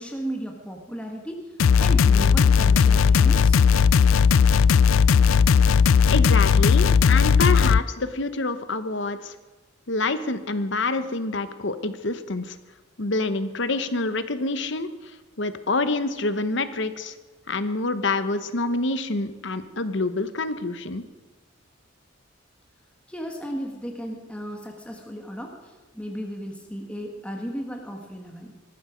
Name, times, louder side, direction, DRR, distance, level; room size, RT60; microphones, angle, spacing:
voice 1, 0.0-1.5 1.8-3.6 23.1-28.5, equal, 5° left, 1 dB, 1.7 m, -35 dB
sound 1, 1.6-7.8, left 6 dB, 85° left, 0.4 m, -17 dB
voice 2, 6.1-9.3 9.9-12.6 13.0-14.9 15.4-17.1 17.5-21.0, left 3 dB, 60° left, 11 dB, 1.1 m, -27 dB
19.0 x 14.5 x 5.2 m, 1.2 s
head